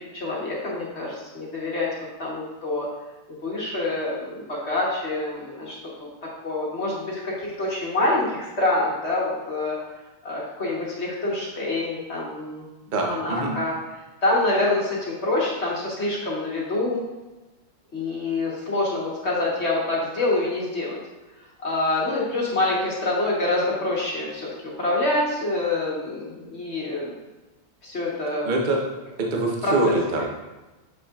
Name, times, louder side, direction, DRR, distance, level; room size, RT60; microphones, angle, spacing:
voice 1, 0.0-2.9 3.4-6.1 6.4-9.8 10.2-12.7 13.0-13.7 14.2-17.0 17.9-21.0 21.6-24.5 24.8-27.1 27.8-28.5 29.6-30.0, left 2 dB, 35° left, -4 dB, 1.3 m, -26 dB
voice 2, 12.9-13.5 28.4-28.8 29.2-30.3, right 2 dB, 55° right, 0 dB, 0.5 m, -24 dB
7.5 x 5.8 x 2.4 m, 1.1 s
omnidirectional pair, 2.3 m